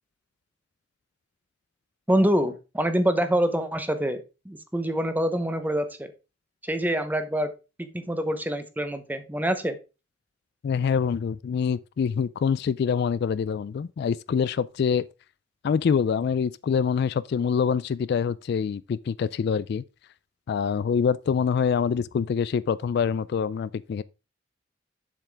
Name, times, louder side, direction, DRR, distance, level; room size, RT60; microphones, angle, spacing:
voice 1, 2.1-6.1 6.6-7.5 7.8-9.8, equal, 10° right, 0.9 m, -26 dB
voice 2, 10.6-15.0 15.6-19.8 20.5-24.0, left 6 dB, 55° left, 0.3 m, -25 dB
7.5 x 7.0 x 3.4 m
head